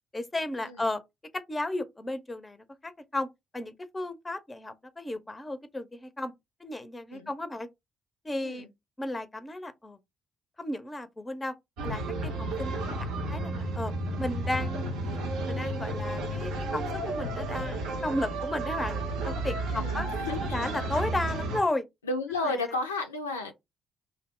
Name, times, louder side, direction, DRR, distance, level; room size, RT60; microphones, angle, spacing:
voice 1, 0.1-1.0 1.3-3.3 3.5-6.3 6.6-7.7 8.2-8.7 9.0-10.0 10.6-11.5 11.8-13.9 14.2-15.2 15.5-19.0 19.2-20.1 20.4-21.8 22.3-22.7, left 1 dB, 20° left, 0.5 m, -34 dB
sound 1, 11.8-21.6, right 2 dB, 65° right, 0.6 m, -32 dB
voice 2, 19.7-20.7 22.1-23.5, left 2 dB, 80° left, 0.3 m, -33 dB
2.6 x 2.0 x 3.2 m
figure-of-eight pair, 40°, 0 cm